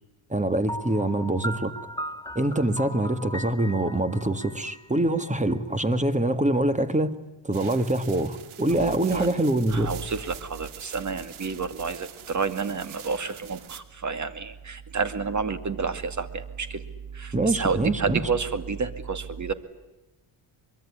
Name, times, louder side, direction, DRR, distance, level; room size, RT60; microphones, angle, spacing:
voice 1, 0.3-1.7 2.4-7.1 7.4-9.9 17.3-18.2, right 1 dB, 15° right, 12 dB, 1.8 m, -24 dB
Piano, 0.7-5.5, equal, 10° left, 1.0 m, -38 dB
sound 1, 7.5-13.8, right 9 dB, 80° right, 2.2 m, -45 dB
voice 2, 8.8-9.3 9.7-16.8 17.1-19.5, right 5 dB, 35° right, 12 dB, 2.3 m, -30 dB
23.5 x 23.5 x 9.9 m, 1.0 s
cardioid pair, 100°, 49 cm